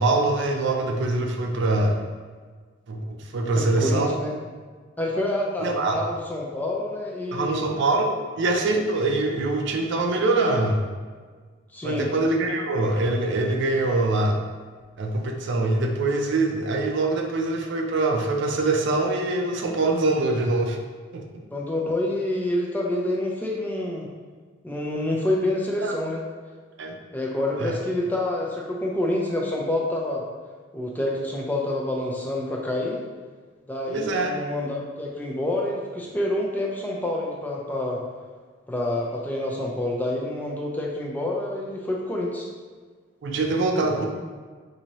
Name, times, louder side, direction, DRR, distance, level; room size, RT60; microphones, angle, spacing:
voice 1, 0.0-2.0 2.9-4.2 5.6-6.1 7.3-8.1 8.4-10.9 11.8-14.4 15.0-20.8 21.1-21.2 25.8-26.0 26.8-26.9 27.6-27.8 33.9-34.3 43.2-44.1, right 2 dB, 65° right, 3 dB, 0.4 m, -24 dB
voice 2, 3.6-4.3 5.0-7.6 11.7-12.1 21.5-24.1 24.6-26.2 27.1-30.2 30.7-33.0 33.7-38.0 38.7-42.5, left 1 dB, 10° left, -2 dB, 0.4 m, -27 dB
4.1 x 2.7 x 3.0 m, 1.5 s
head